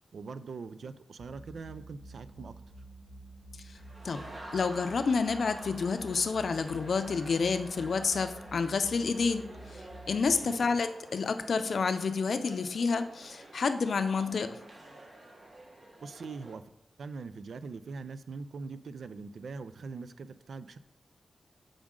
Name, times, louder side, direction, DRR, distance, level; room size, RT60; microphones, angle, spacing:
voice 1, 0.1-2.5 10.4-10.6 16.0-16.6 17.0-20.8, right 4 dB, 80° right, 13 dB, 0.4 m, -42 dB
sound 1, 1.2-10.3, right 2 dB, 30° right, 2.2 m, -50 dB
sound 2, 3.7-16.5, right 1 dB, 45° right, 1.3 m, -49 dB
voice 2, 4.5-9.5 10.1-14.6, left 5 dB, 70° left, 9 dB, 0.5 m, -29 dB
7.2 x 5.0 x 3.7 m, 0.80 s
wide cardioid pair, 90°, 0 cm